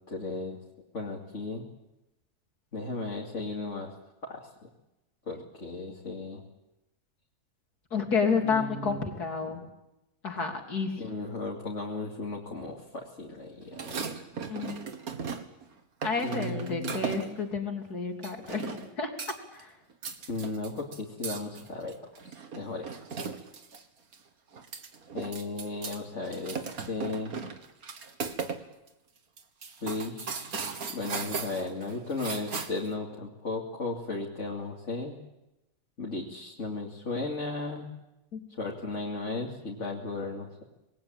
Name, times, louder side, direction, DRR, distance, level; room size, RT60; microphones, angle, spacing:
voice 1, 0.1-0.6 0.9-1.7 2.7-3.9 4.2-4.5 5.3-6.4 8.4-9.1 11.0-14.1 16.2-17.0 20.3-22.0 22.5-22.9 25.1-26.6 26.9-27.4 29.8-30.7 30.9-35.1 36.0-37.9 38.6-40.5, left 3 dB, 50° left, -2 dB, 3.1 m, -35 dB
voice 2, 7.9-9.7 10.2-10.9 14.5-14.8 16.0-19.1 19.5-19.7 38.3-38.4, left 5 dB, 90° left, 2 dB, 3.8 m, -30 dB
sound 1, 13.7-15.6 16.0-17.4 18.2-18.9 19.2-19.6 19.9-23.8 24.1-24.2 24.5-26.0 26.3-28.6 28.9-29.0 29.4-32.9, right 5 dB, 70° right, 2.1 m, -37 dB
26.0 x 21.0 x 8.9 m, 0.95 s
omnidirectional pair, 1.6 m